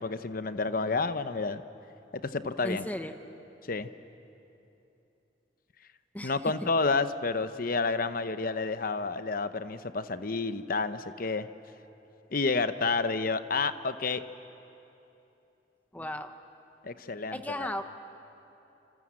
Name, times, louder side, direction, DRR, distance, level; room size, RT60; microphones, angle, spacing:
voice 1, 0.0-1.6 2.1-2.8 3.7-3.9 6.2-11.5 12.3-14.2 16.8-17.4, left 4 dB, 50° left, 11 dB, 0.9 m, -30 dB
voice 2, 2.6-3.1 6.1-6.7 15.9-16.3 17.3-17.8, left 1 dB, 10° left, 7 dB, 1.0 m, -35 dB
27.0 x 27.0 x 7.5 m, 2.9 s
head